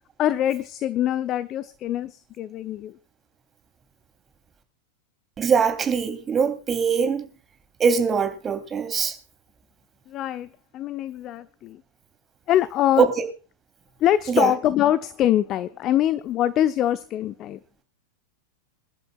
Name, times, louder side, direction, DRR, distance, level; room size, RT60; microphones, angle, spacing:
voice 1, 0.2-3.0 10.1-11.8 12.5-13.1 14.0-17.6, left 12 dB, 35° left, 14 dB, 0.8 m, -24 dB
voice 2, 5.4-7.2 7.8-9.1 13.0-13.3 14.3-14.5, right 6 dB, 20° right, 7 dB, 3.2 m, -22 dB
27.5 x 11.5 x 2.4 m, 0.33 s
figure-of-eight pair, 90°, 0 cm